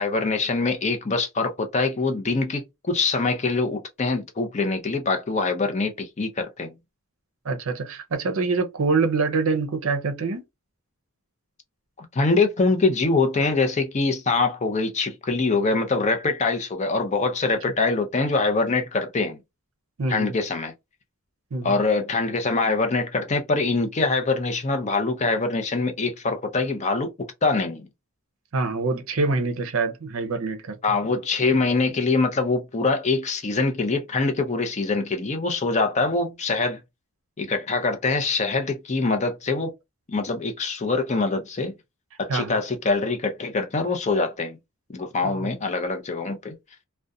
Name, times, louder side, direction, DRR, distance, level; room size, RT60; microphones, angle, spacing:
voice 1, 0.0-6.8 12.0-19.4 20.1-20.7 21.6-27.9 30.8-36.8 37.4-39.7 40.1-41.8 42.2-44.6 44.9-46.6, left 3 dB, 30° left, 0.5 m, -24 dB
voice 2, 7.4-10.4 20.0-20.3 21.5-21.8 28.5-30.7 42.3-42.6 45.2-45.5, right 3 dB, 70° right, 0.6 m, -25 dB
2.4 x 2.2 x 2.6 m
head